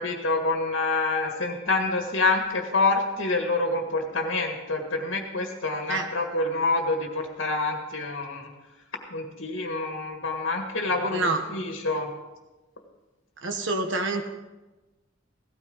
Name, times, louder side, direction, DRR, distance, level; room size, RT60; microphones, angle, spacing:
voice 1, 0.0-8.5 9.1-12.1, left 3 dB, 85° left, 2 dB, 1.8 m, -27 dB
voice 2, 13.4-14.2, right 3 dB, 70° right, 5 dB, 1.2 m, -27 dB
17.0 x 13.5 x 3.9 m, 1.1 s
head